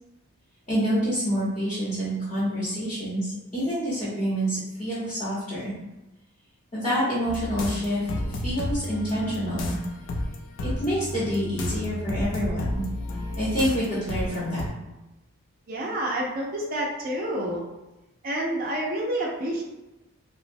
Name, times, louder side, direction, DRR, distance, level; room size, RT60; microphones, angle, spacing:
voice 1, 0.7-5.7 6.7-9.8 10.8-12.8 13.4-14.6, equal, 30° left, -9 dB, 0.8 m, -27 dB
sound 1, 7.3-14.7, left 1 dB, 55° left, 0.3 m, -32 dB
voice 2, 15.7-17.6 18.2-19.6, right 1 dB, 40° right, -2 dB, 0.4 m, -28 dB
2.9 x 2.0 x 2.5 m, 1.0 s
head